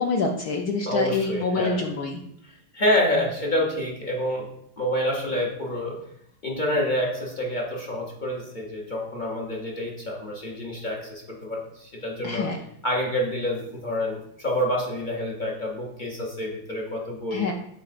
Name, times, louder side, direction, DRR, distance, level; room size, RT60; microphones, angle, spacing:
voice 1, 0.0-2.2 12.2-12.6 17.3-17.5, left 4 dB, 75° left, 2 dB, 0.9 m, -26 dB
voice 2, 0.8-1.8 2.7-4.5 4.8-6.0 6.4-12.5 12.8-17.5, left 1 dB, 55° left, -2 dB, 0.5 m, -27 dB
8.9 x 4.4 x 2.5 m, 0.73 s
omnidirectional pair, 2.3 m